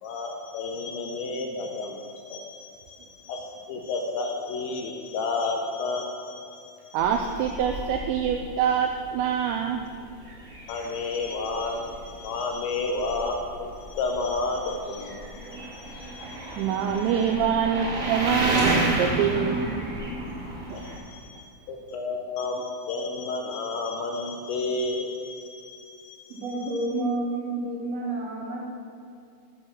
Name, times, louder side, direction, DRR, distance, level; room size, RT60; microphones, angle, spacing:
voice 1, 0.0-7.0 10.7-17.1 20.7-26.9, left 3 dB, 80° left, 1 dB, 2.8 m, -32 dB
voice 2, 6.9-9.8 16.6-19.8 20.7-20.9, right 8 dB, 85° right, 4 dB, 2.6 m, -25 dB
sound 1, 7.0-21.0, right 1 dB, 25° right, 1.7 m, -32 dB
voice 3, 26.3-28.6, right 2 dB, 70° right, -3 dB, 2.5 m, -29 dB
9.1 x 6.4 x 6.2 m, 2.5 s
omnidirectional pair, 5.7 m